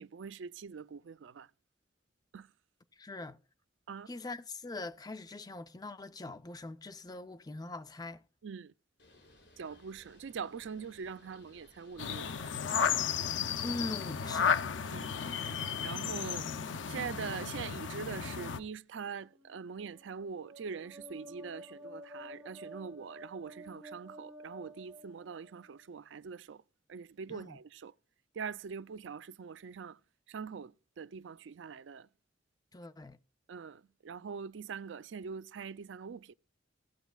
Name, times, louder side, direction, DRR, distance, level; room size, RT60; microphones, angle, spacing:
voice 1, 0.0-1.5 2.3-2.5 3.9-4.1 8.4-8.7 9.6-12.6 14.9-15.1 15.8-16.5 16.9-26.6 26.9-27.9 28.3-30.0 30.3-32.1 33.5-36.3, right 6 dB, 85° right, 0.4 m, -43 dB
voice 2, 3.0-3.4 4.1-8.2 13.6-14.6 27.3-27.6 32.7-33.2, left 2 dB, 20° left, 0.5 m, -42 dB
Bird, 9.0-14.6, left 1 dB, 70° left, 5.3 m, -61 dB
sound 1, 12.0-18.6, left 7 dB, 90° left, 0.6 m, -33 dB
sound 2, 19.3-25.8, equal, 15° right, 4.6 m, -51 dB
17.0 x 8.0 x 2.3 m
head